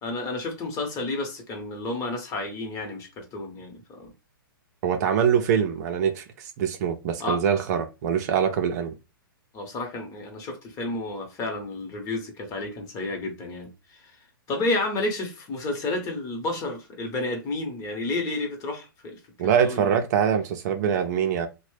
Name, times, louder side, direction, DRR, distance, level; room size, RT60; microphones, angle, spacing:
voice 1, 0.0-4.1 7.2-7.4 9.5-14.1 14.5-19.2 19.6-20.0, left 2 dB, 25° left, 1.0 m, -31 dB
voice 2, 4.8-8.9 19.4-21.5, right 8 dB, 50° right, 0.5 m, -24 dB
2.9 x 2.2 x 3.2 m
hypercardioid pair, 120°, 12 cm